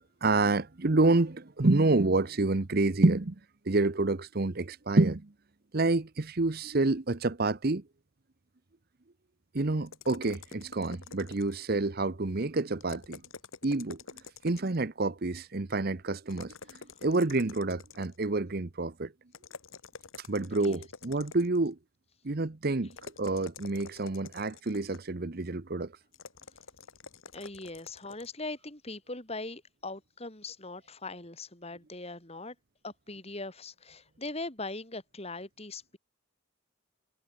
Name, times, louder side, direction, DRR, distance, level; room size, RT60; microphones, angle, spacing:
voice 1, 0.2-3.3 3.7-5.3 5.7-7.8 9.5-13.2 13.6-14.0 14.4-16.5 17.0-19.1 20.3-21.8 22.2-22.9 23.2-25.9, right 2 dB, 45° right, 0.9 m, -28 dB
sound 1, 9.9-11.7 12.8-14.8 16.3-18.3 19.3-21.7 22.9-25.1 26.1-28.3, left 5 dB, 75° left, 1.8 m, -48 dB
voice 2, 27.3-32.6 32.8-36.0, left 2 dB, 30° left, 4.1 m, -40 dB
head